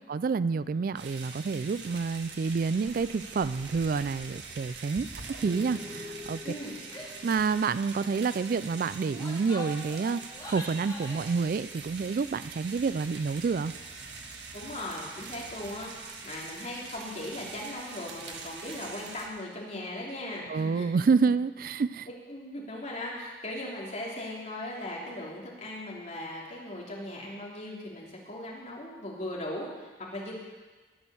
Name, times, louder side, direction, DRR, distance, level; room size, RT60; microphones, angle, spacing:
voice 1, 0.1-5.1 5.4-6.4 7.2-10.2 10.5-13.7 20.5-22.1, right 5 dB, 50° right, 16 dB, 0.3 m, -28 dB
sound 1, 1.0-19.3, right 4 dB, 80° right, 1.7 m, -44 dB
sound 2, 5.4-9.0, left 3 dB, 25° right, 2.0 m, -46 dB
voice 2, 6.4-6.7 14.5-20.9 21.1-21.3 22.1-30.3, left 1 dB, 40° left, -4 dB, 3.1 m, -38 dB
Female speech woman speaking / Yell, 6.9-7.2 7.5-7.7 7.9-8.3 8.9-11.4, left 1 dB, 25° left, 2.7 m, -44 dB
19.0 x 6.4 x 7.0 m, 1.3 s
head